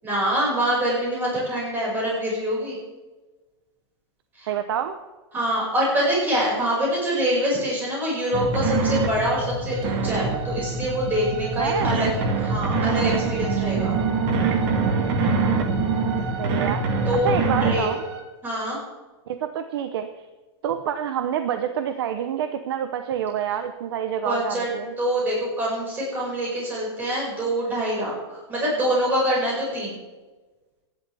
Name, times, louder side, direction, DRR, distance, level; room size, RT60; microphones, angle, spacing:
voice 1, 0.0-2.8 4.4-4.5 5.3-12.1 12.4-13.9 17.1-17.3 17.6-17.9 18.4-18.8 24.2-24.7 25.0-30.0, equal, 10° right, -5 dB, 5.6 m, -25 dB
voice 2, 4.5-5.0 11.6-12.0 16.4-17.0 17.2-18.0 19.3-20.1 20.6-24.9, right 9 dB, 55° right, 8 dB, 0.8 m, -27 dB
sound 1, 8.3-17.8, right 4 dB, 35° right, 1.8 m, -24 dB
sound 2, 9.7-18.2, right 8 dB, 75° right, 2.4 m, -38 dB
24.0 x 11.0 x 3.5 m, 1.2 s
supercardioid pair, 170°, 15 cm